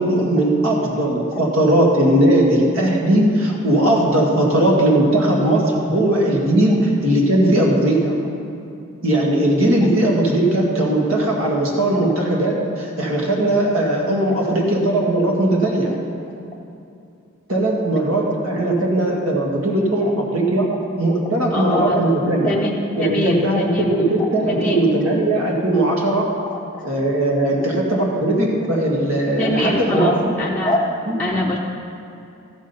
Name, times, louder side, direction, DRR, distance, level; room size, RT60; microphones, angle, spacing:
voice 1, 0.0-8.1 9.0-15.9 17.5-20.7 21.0-22.6 23.0-26.3 26.8-30.3 31.1-31.2, right 1 dB, 70° right, -2 dB, 2.0 m, -18 dB
voice 2, 21.5-22.1 22.4-24.0 24.4-24.8 26.5-26.9 27.9-28.0 29.4-30.8 31.2-31.6, left 1 dB, 5° left, -5 dB, 0.6 m, -23 dB
14.0 x 6.2 x 5.6 m, 2.7 s
head